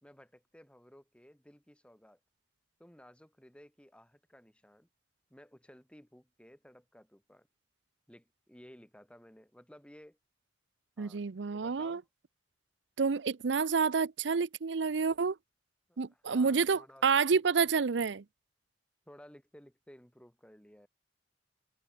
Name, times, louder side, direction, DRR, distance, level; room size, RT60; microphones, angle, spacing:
voice 1, 0.0-2.2 2.8-4.9 5.3-7.5 8.1-10.2 11.0-11.2 11.5-12.1 15.9-17.0 17.3-18.0 19.1-20.9, equal, 5° left, 3.1 m, -57 dB
voice 2, 11.0-12.0 13.0-15.4 16.0-18.2, right 5 dB, 75° right, 0.6 m, -29 dB
head